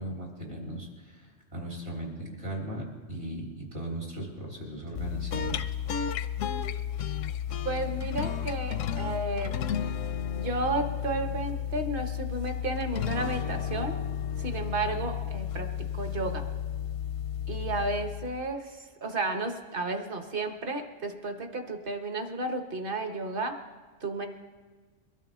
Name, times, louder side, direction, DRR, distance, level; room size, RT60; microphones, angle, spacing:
voice 1, 0.0-5.7, right 1 dB, 60° right, -2 dB, 4.0 m, -38 dB
sound 1, 4.9-18.5, left 9 dB, 85° left, 1.0 m, -33 dB
voice 2, 7.6-9.5 10.3-14.0 14.4-15.7 16.0-16.5 17.5-23.6 24.0-24.3, right 2 dB, 45° right, 5 dB, 1.4 m, -32 dB
22.5 x 12.5 x 3.7 m, 1.4 s
omnidirectional pair, 1.3 m